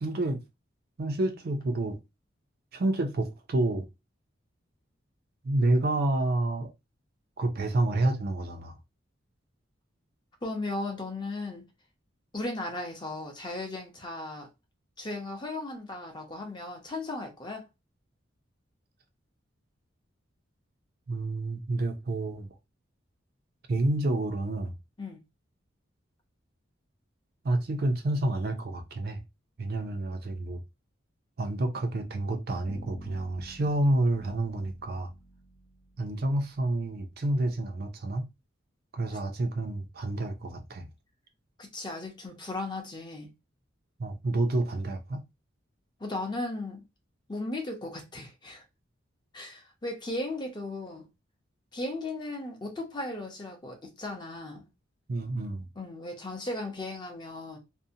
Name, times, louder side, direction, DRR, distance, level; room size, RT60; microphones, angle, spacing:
voice 1, 0.0-0.4 1.0-2.0 2.7-3.9 5.4-6.7 7.4-8.8 21.1-22.5 23.7-24.7 27.4-29.2 29.6-30.6 31.4-35.1 36.0-38.2 38.9-40.9 44.0-45.2 55.1-55.7, right 2 dB, 50° right, 0.5 m, -29 dB
voice 2, 10.4-11.6 12.3-14.5 15.0-17.7 25.0-25.2 41.6-43.3 46.0-46.8 47.3-48.6 49.3-51.1 51.7-54.7 55.8-57.6, left 2 dB, 25° left, 0.6 m, -36 dB
Bass guitar, 32.7-36.6, right 1 dB, 80° left, 0.8 m, -50 dB
2.6 x 2.1 x 2.6 m
head